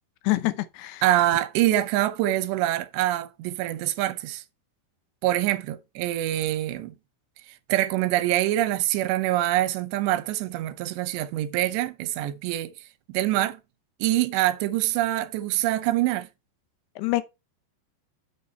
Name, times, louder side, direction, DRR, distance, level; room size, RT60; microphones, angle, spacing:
voice 1, 0.2-1.0 17.0-17.2, left 19 dB, 80° left, 2.8 m, -26 dB
voice 2, 1.0-4.4 5.2-6.9 7.7-12.7 13.1-13.6 14.0-16.3, right 14 dB, 85° right, 3.0 m, -25 dB
7.5 x 6.8 x 4.4 m
omnidirectional pair, 4.9 m